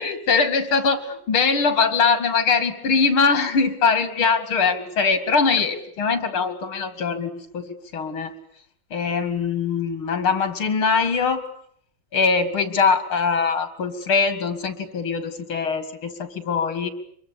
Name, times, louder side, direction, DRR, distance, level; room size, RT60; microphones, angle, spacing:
voice 1, 0.0-7.6 7.9-8.3 8.9-11.4 12.1-16.9, left 5 dB, 80° left, 11 dB, 3.2 m, -22 dB
25.0 x 22.5 x 8.8 m, 0.66 s
omnidirectional pair, 2.3 m